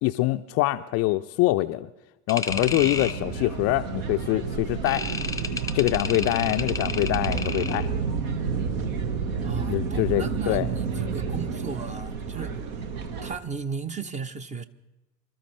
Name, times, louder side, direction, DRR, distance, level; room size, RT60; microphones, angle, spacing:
voice 1, 0.0-1.9 2.3-5.1 5.7-7.9 9.6-10.7, left 18 dB, 35° left, 0.4 m, -24 dB
sound 1, 2.3-3.2 4.9-7.9, left 3 dB, 10° left, 0.8 m, -32 dB
sound 2, 2.5-13.4, right 5 dB, 65° right, 1.5 m, -30 dB
voice 2, 9.4-12.6 13.2-14.6, right 6 dB, 15° right, 0.6 m, -35 dB
25.5 x 13.0 x 3.2 m
figure-of-eight pair, 70°, 45 cm